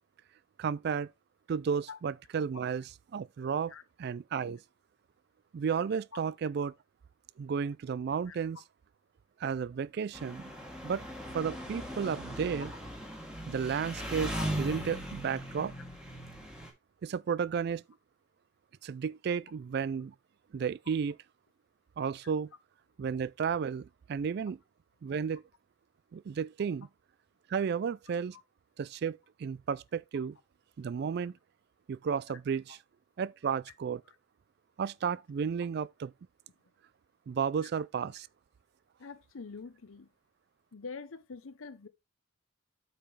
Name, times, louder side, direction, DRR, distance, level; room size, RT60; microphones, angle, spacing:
voice 1, 0.6-1.1 1.5-3.7 4.0-4.6 5.5-6.7 7.4-8.6 9.4-10.5 10.8-11.0 11.3-12.7 13.5-15.7 17.0-17.8 18.8-20.1 20.5-21.2 22.0-22.5 23.0-24.6 25.0-25.4 26.1-26.9 27.5-28.4 28.8-30.4 30.8-31.3 31.9-32.8 33.2-34.0 34.8-36.1 37.3-38.3, right 6 dB, 50° right, 0.3 m, -33 dB
Engine, 10.1-16.7, equal, 5° right, 1.9 m, -39 dB
voice 2, 39.0-40.1 40.7-41.9, left 4 dB, 85° left, 0.7 m, -44 dB
8.5 x 5.7 x 3.3 m
head